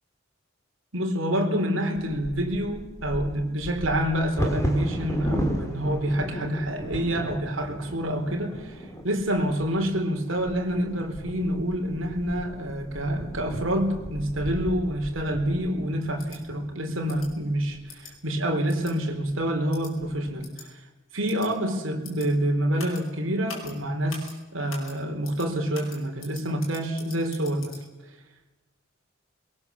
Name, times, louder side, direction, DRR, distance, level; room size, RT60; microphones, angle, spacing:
voice 1, 0.9-20.8 21.1-27.8, equal, 70° right, 3 dB, 4.2 m, -27 dB
Bird vocalization bird call bird song / Wind / Thunder, 1.9-17.8 18.5-18.6 18.9-19.3 19.8-20.3, equal, 15° left, 3.4 m, -35 dB
sound 1, 16.2-16.4 17.1-17.3 17.9-18.1 18.7-18.9 19.7-19.9 20.4-20.6 21.3-21.5 22.0-22.3 22.8-23.0 23.5-23.7 24.1-24.3 24.7-24.9 25.2-25.5 25.7-27.8, left 5 dB, 85° left, 7.5 m, -43 dB
22.5 x 22.0 x 7.3 m, 1.2 s
head